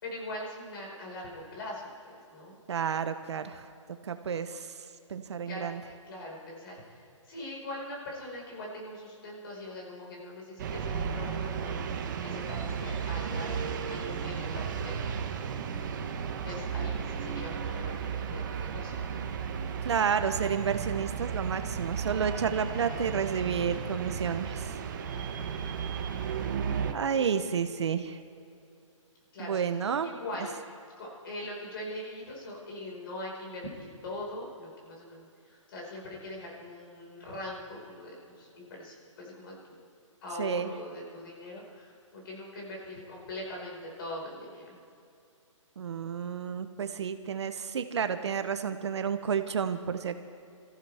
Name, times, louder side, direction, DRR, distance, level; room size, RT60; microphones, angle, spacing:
voice 1, 0.0-2.6 5.5-5.7 6.0-15.5 16.4-19.2 25.1-25.6 29.3-29.7 30.0-30.6 31.0-39.6 40.2-44.8, left 1 dB, 45° left, -2 dB, 5.0 m, -42 dB
voice 2, 2.7-3.7 4.0-4.7 5.1-5.8 19.8-24.7 26.9-28.2 29.4-30.1 40.4-40.7 45.8-50.2, right 7 dB, 60° right, 10 dB, 0.9 m, -30 dB
sound 1, 10.6-26.9, right 7 dB, 35° right, 1.0 m, -34 dB
23.5 x 14.5 x 3.5 m, 2.5 s
hypercardioid pair, 165°, 17 cm